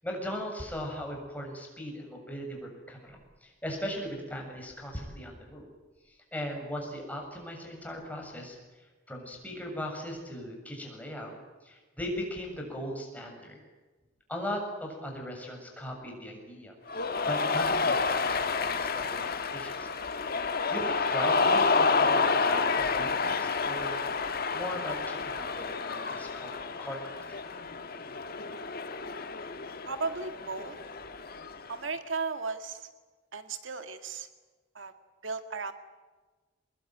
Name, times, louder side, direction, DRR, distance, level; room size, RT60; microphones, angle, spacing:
voice 1, 0.0-5.7 6.1-8.6 9.1-11.3 11.6-13.6 14.3-16.7 17.3-20.0 20.4-24.0 24.5-27.4, equal, 10° left, 1 dB, 7.3 m, -39 dB
Cheering, 16.9-31.7, left 4 dB, 50° left, 1.6 m, -29 dB
voice 2, 29.8-30.8 31.7-32.9 33.3-34.3 34.8-34.9 35.2-35.7, right 4 dB, 85° right, 8 dB, 2.0 m, -35 dB
24.5 x 21.0 x 9.3 m, 1.3 s
head